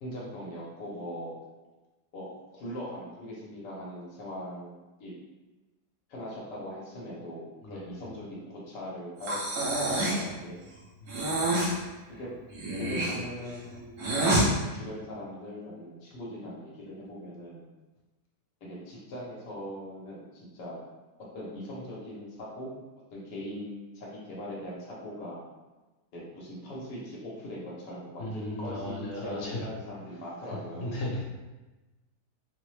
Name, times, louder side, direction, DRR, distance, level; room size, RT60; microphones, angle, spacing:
voice 1, 0.0-1.4 2.1-5.1 6.1-9.4 9.8-10.6 12.1-12.3 12.8-13.9 14.4-17.7 18.6-20.8 21.3-22.7 23.1-25.4 26.1-30.9, equal, 80° left, -6 dB, 1.5 m, -40 dB
voice 2, 7.6-8.0 11.0-11.5 28.2-29.7 30.4-31.3, left 1 dB, 55° left, -4 dB, 1.0 m, -36 dB
Breathing, 9.2-10.3 11.1-11.7 12.5-14.5, right 1 dB, 65° right, 1.3 m, -27 dB
4.1 x 2.1 x 3.1 m, 1.2 s
omnidirectional pair, 1.8 m